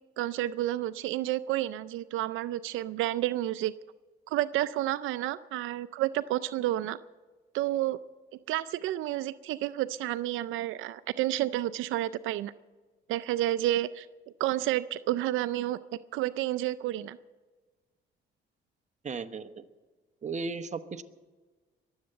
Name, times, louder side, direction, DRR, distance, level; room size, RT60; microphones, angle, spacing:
voice 1, 0.2-3.7 4.3-7.0 7.5-8.0 8.5-12.5 13.1-14.1 14.4-15.8 16.1-17.2, right 14 dB, 90° right, 15 dB, 0.5 m, -30 dB
voice 2, 19.0-19.7 20.2-21.0, right 4 dB, 35° right, 9 dB, 1.1 m, -36 dB
22.5 x 8.0 x 7.8 m, 1.3 s
cardioid pair, 90°, 20 cm